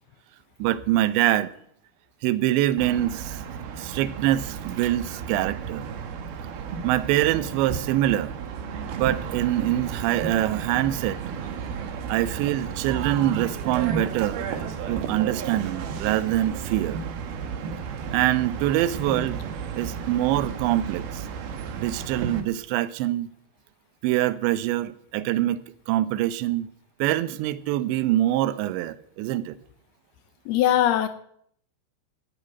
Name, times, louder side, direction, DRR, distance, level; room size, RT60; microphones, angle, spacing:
voice 1, 0.6-1.5 2.2-3.4 3.8-5.9 6.8-8.3 9.0-11.2 12.1-14.4 14.9-17.0 18.1-19.4 19.8-21.3 21.8-23.3 24.0-25.6 25.9-26.7 27.0-29.6, right 14 dB, 85° right, 3.0 m, -24 dB
sound 1, 2.8-22.4, right 6 dB, 65° right, 3.1 m, -33 dB
voice 2, 30.5-31.1, left 11 dB, 80° left, 2.5 m, -20 dB
13.5 x 7.4 x 9.3 m
omnidirectional pair, 5.0 m